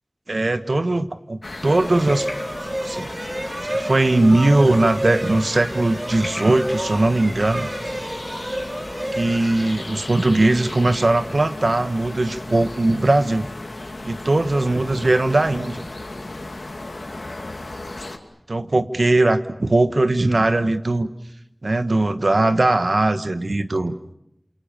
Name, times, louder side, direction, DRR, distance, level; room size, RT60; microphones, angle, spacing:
voice 1, 0.3-2.2 2.8-3.1 3.6-7.7 9.1-13.5 14.0-15.9 18.5-21.1 21.6-23.9, right 2 dB, 80° right, 10 dB, 1.5 m, -19 dB
sound 1, 1.4-18.2, left 2 dB, 80° left, 2.7 m, -35 dB
sound 2, 1.6-10.3, right 1 dB, 50° right, 6.1 m, -30 dB
28.5 x 28.0 x 6.9 m, 0.80 s
wide cardioid pair, 45°, 0 cm